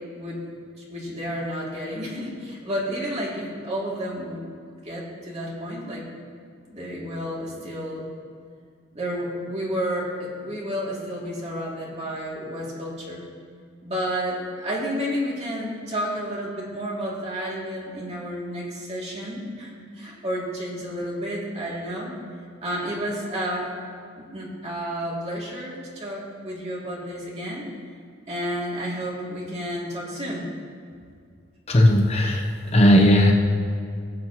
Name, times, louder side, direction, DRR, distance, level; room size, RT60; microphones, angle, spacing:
voice 1, 0.8-6.0 6.7-8.1 8.9-13.3 13.8-22.2 22.6-23.7 24.1-27.7 28.3-30.5, equal, 35° right, -5 dB, 2.5 m, -31 dB
voice 2, 31.7-33.3, equal, 35° left, 2 dB, 0.8 m, -17 dB
18.0 x 7.5 x 3.0 m, 2.3 s
head